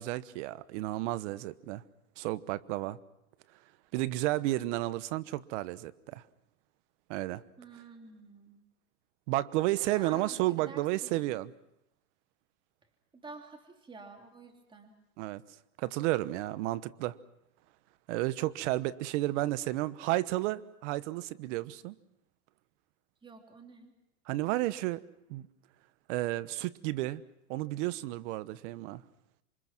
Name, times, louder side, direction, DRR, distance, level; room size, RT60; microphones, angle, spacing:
voice 1, 0.0-1.8 2.2-3.0 3.9-6.2 7.1-7.4 9.3-11.5 15.2-15.4 15.8-17.2 18.1-22.0 24.3-25.0 25.3-25.5 26.1-27.2 27.5-29.0, right 17 dB, 55° right, 16 dB, 1.2 m, -32 dB
voice 2, 7.6-8.6 9.9-11.4 13.1-14.9 23.2-23.9, right 3 dB, 10° right, 3 dB, 3.0 m, -50 dB
27.5 x 24.5 x 6.1 m, 0.82 s
supercardioid pair, 135°, 43 cm